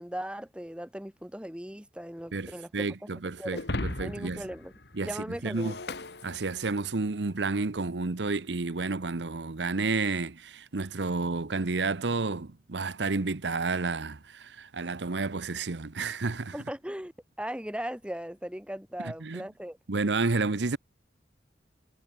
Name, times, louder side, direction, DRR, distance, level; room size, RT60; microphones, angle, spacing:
voice 1, 0.0-2.8 3.4-3.6 4.0-4.7 5.0-5.7 16.5-17.1 17.4-19.8, equal, 5° right, 3.6 m, -38 dB
voice 2, 2.3-4.4 5.0-5.7 6.2-16.5 19.0-19.4 19.9-20.8, right 3 dB, 85° right, 0.9 m, -31 dB
Shatter, 3.5-7.0, left 2 dB, 65° left, 2.2 m, -38 dB
head